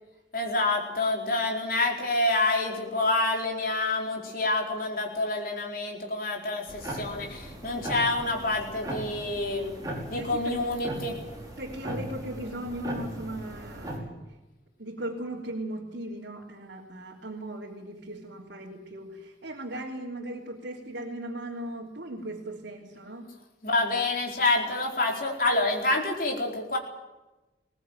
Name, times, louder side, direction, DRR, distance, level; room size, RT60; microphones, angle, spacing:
voice 1, 0.3-9.7 10.1-11.2 23.6-26.8, left 2 dB, 50° left, 1 dB, 4.6 m, -27 dB
sound 1, 6.7-14.0, right 1 dB, 20° right, 5.4 m, -38 dB
voice 2, 10.1-10.6 11.6-14.2 14.8-23.3, right 1 dB, 80° right, -2 dB, 3.3 m, -38 dB
21.0 x 19.5 x 9.2 m, 1.1 s
head